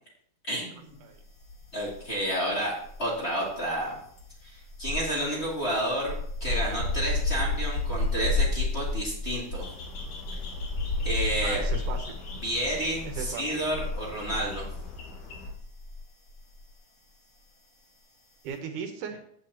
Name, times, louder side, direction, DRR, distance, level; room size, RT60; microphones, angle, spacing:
voice 1, 0.5-0.9 1.7-4.0 4.4-6.1 6.4-9.6 11.0-11.6 12.4-14.6, right 1 dB, 20° left, -5 dB, 2.6 m, -30 dB
sound 1, 1.4-2.2 2.5-16.0 16.3-16.6, left 2 dB, 35° left, 1.5 m, -31 dB
sound 2, 9.5-15.5, left 4 dB, 70° left, 3.1 m, -44 dB
voice 2, 11.4-12.2 13.1-13.6 18.4-19.2, right 7 dB, 80° right, 5 dB, 2.5 m, -37 dB
14.0 x 8.4 x 2.9 m, 0.68 s
omnidirectional pair, 3.7 m